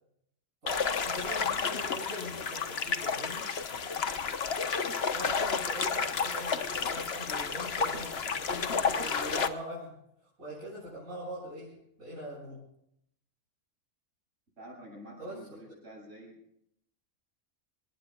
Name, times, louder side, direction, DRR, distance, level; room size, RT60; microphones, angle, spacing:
voice 1, 0.6-3.5 5.1-12.6 15.2-15.4, equal, 80° right, -8 dB, 8.2 m, -42 dB
sound 1, 0.7-9.5, left 5 dB, 50° left, 1.3 m, -31 dB
voice 2, 14.6-16.4, equal, 65° right, 0 dB, 8.1 m, -48 dB
27.0 x 20.5 x 2.4 m, 0.73 s
omnidirectional pair, 1.4 m